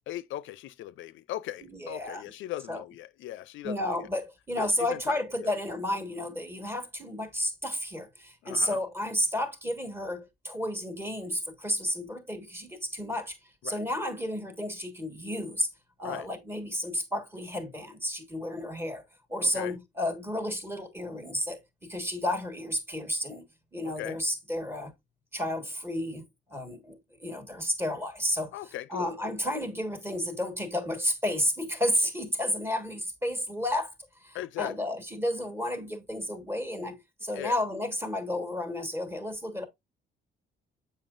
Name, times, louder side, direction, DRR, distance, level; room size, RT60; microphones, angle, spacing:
voice 1, 0.1-3.8 4.6-5.5 8.4-8.8 13.6-13.8 16.0-16.3 19.4-19.8 24.0-24.2 28.5-29.1 34.3-34.8 37.3-37.5, left 14 dB, 75° left, 0.4 m, -38 dB
voice 2, 1.7-2.2 2.7-2.8 3.6-13.4 13.6-15.7 16.0-19.0 19.3-23.4 23.7-24.9 25.3-26.2 26.5-28.5 28.9-33.9 34.2-39.7, left 1 dB, 10° right, 1.5 m, -32 dB
7.2 x 5.6 x 2.5 m
cardioid pair, 90°, 20 cm